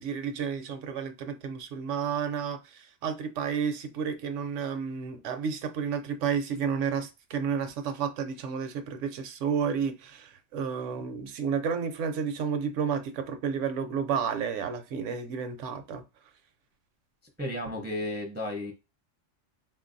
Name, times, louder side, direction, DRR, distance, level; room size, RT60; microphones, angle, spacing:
voice 1, 0.0-16.0, right 6 dB, 80° right, 1.0 m, -31 dB
voice 2, 17.4-18.7, left 1 dB, 15° right, 0.4 m, -33 dB
3.9 x 2.6 x 2.5 m
omnidirectional pair, 1.2 m